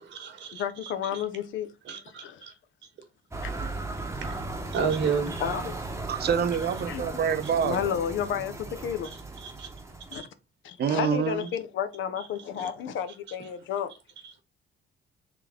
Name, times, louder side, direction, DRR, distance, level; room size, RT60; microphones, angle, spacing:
voice 1, 0.0-1.2 1.8-2.5 4.2-5.4 9.0-9.7 10.1-10.3 12.2-12.3 12.6-12.7 13.3-13.4 14.2-14.3, right 6 dB, 70° right, 1.2 m, -33 dB
voice 2, 0.5-1.7 2.2-2.5 3.4-3.5 5.4-6.1 6.9-7.2 7.6-9.1 10.1-10.2 10.6-13.9, left 8 dB, 75° left, 0.6 m, -32 dB
sound 1, 3.3-10.2, right 2 dB, 15° right, 0.8 m, -36 dB
voice 3, 6.1-8.0 10.8-11.5, right 8 dB, 55° right, 0.7 m, -27 dB
3.6 x 3.0 x 3.6 m
cardioid pair, 90°, 20 cm